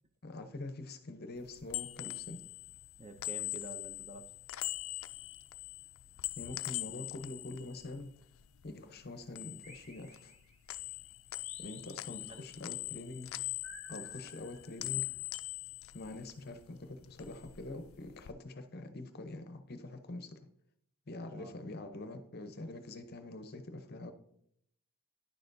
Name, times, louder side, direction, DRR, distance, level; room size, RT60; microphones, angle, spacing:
voice 1, 0.2-2.4 6.4-8.1 8.6-10.3 11.6-13.3 13.9-15.1 15.9-20.4 21.1-24.1, left 2 dB, 45° left, 8 dB, 0.7 m, -45 dB
sound 1, 1.4-8.7 9.0-10.4 10.7-16.7 17.0-18.3, left 19 dB, 65° left, 0.3 m, -42 dB
voice 2, 3.0-4.3 12.1-12.5 14.1-14.3 21.3-21.6, right 2 dB, 25° right, 7 dB, 0.5 m, -49 dB
sound 2, 9.6-10.8 11.4-12.6 13.6-15.1, right 1 dB, 40° right, 2.0 m, -56 dB
10.0 x 6.6 x 2.6 m, 0.70 s
head